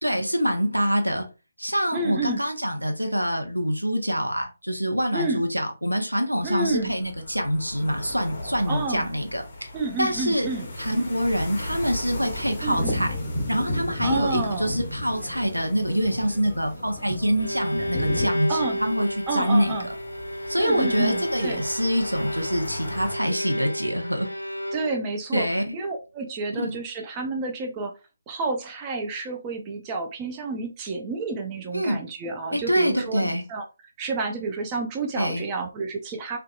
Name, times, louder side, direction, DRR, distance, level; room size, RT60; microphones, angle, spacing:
voice 1, 0.0-1.3 1.6-9.7 10.0-10.5 10.8-13.1 13.5-19.8 20.5-24.3 25.3-25.8 26.6-26.8 31.7-32.0 32.5-33.4 35.2-35.4, equal, 90° right, 0.6 m, -25 dB
voice 2, 1.9-2.4 5.1-5.4 6.4-7.0 8.7-9.1 9.7-10.7 12.6-13.0 14.0-14.7 18.5-18.8 19.3-19.9 20.6-21.6 24.7-27.9 28.3-33.6 34.0-36.4, right 3 dB, 20° right, 0.4 m, -30 dB
sound 1, 6.4-23.2, left 1 dB, 30° left, 0.7 m, -39 dB
sound 2, 10.4-18.2, left 1 dB, 5° left, 1.2 m, -33 dB
Bowed string instrument, 17.2-25.2, equal, 90° left, 0.4 m, -31 dB
2.6 x 2.3 x 2.3 m
figure-of-eight pair, 145°, 0 cm